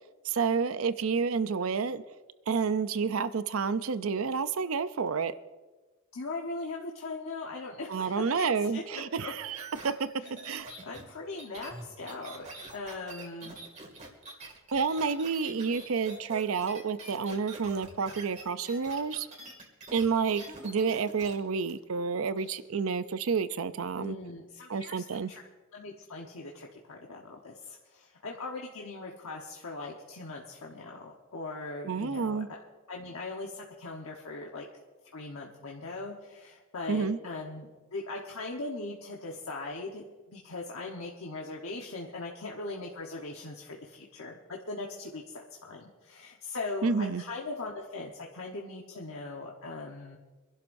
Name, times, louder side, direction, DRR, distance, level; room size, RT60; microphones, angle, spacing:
voice 1, 0.2-2.0 2.5-5.3 7.9-10.1 10.4-10.7 14.7-19.3 19.9-24.2 24.7-25.3 31.9-32.5 36.9-37.2 46.8-47.2, right 5 dB, 75° right, 13 dB, 0.6 m, -29 dB
voice 2, 6.1-8.8 9.2-9.3 10.2-13.6 22.4-22.6 24.0-25.4 25.7-32.6 32.9-34.6 35.1-50.2, left 3 dB, 80° left, -1 dB, 1.2 m, -40 dB
sound 1, 9.6-21.3 21.7-21.8, right 2 dB, 35° right, 2.3 m, -45 dB
25.5 x 11.5 x 2.7 m, 1.2 s
head